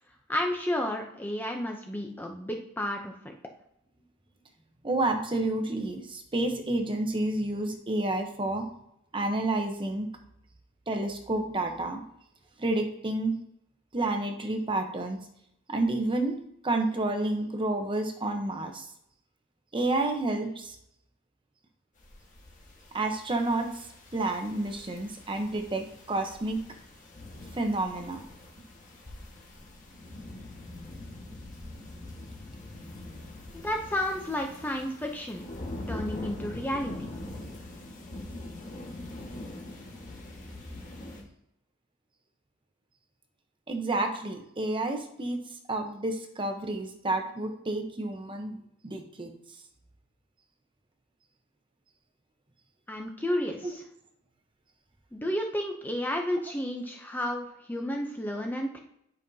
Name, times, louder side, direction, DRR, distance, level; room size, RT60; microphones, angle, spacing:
voice 1, 0.3-3.3 33.6-35.5 35.9-36.9 52.9-53.8 55.1-58.8, left 1 dB, 10° left, 2 dB, 0.5 m, -31 dB
voice 2, 4.8-8.7 9.1-10.1 10.9-12.0 12.6-13.3 13.9-15.2 15.7-16.4 16.6-18.9 19.7-20.8 22.9-23.8 24.1-26.6 27.6-28.2 43.7-45.4 45.7-48.6 48.8-49.3, right 2 dB, 25° right, 4 dB, 0.8 m, -29 dB
sound 1, 22.0-41.2, left 1 dB, 35° left, 1.5 m, -43 dB
9.9 x 5.4 x 2.7 m, 0.77 s
head